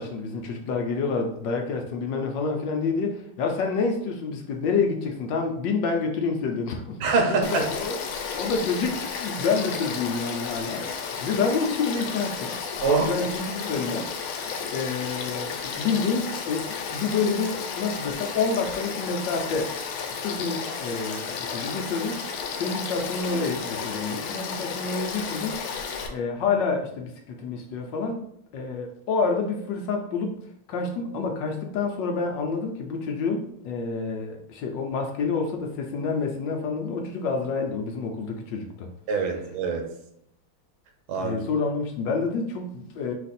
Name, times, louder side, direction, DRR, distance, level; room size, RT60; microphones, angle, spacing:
voice 1, 0.0-7.0 7.3-8.0 8.4-12.6 12.9-14.1 14.7-19.7 20.1-22.2 22.6-25.6 26.1-28.2 28.5-30.4 30.7-38.9 41.2-43.1, left 4 dB, 70° left, 2 dB, 1.2 m, -28 dB
voice 2, 7.0-7.7 12.8-13.1 39.1-39.9 41.1-41.4, right 4 dB, 80° right, 3 dB, 1.7 m, -24 dB
Frog / Stream, 7.4-26.1, left 6 dB, 90° left, 1.6 m, -33 dB
4.9 x 2.5 x 4.1 m, 0.72 s
omnidirectional pair, 2.2 m